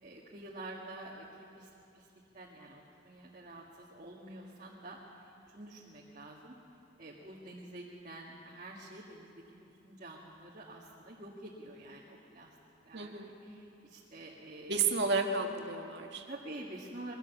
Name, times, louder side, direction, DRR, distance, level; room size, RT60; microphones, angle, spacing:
voice 1, 0.0-2.1 2.3-6.5 7.0-12.6 12.9-13.1 13.4-14.9 16.3-17.1, right 1 dB, 40° right, -4 dB, 1.8 m, -48 dB
voice 2, 12.9-13.4 14.7-16.2, right 4 dB, 60° right, 3 dB, 1.8 m, -32 dB
22.0 x 16.5 x 7.2 m, 2.8 s
head